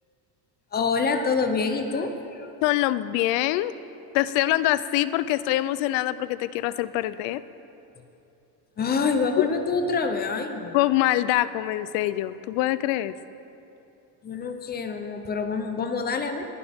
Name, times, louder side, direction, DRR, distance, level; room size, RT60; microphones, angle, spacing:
voice 1, 0.7-2.5 8.8-10.8 14.2-16.5, left 4 dB, 20° left, 7 dB, 0.6 m, -26 dB
voice 2, 2.6-3.7 4.1-7.4 9.4-9.5 10.7-13.1, left 15 dB, 80° left, 16 dB, 0.6 m, -24 dB
19.0 x 11.0 x 3.6 m, 2.8 s
cardioid pair, 160°, 44 cm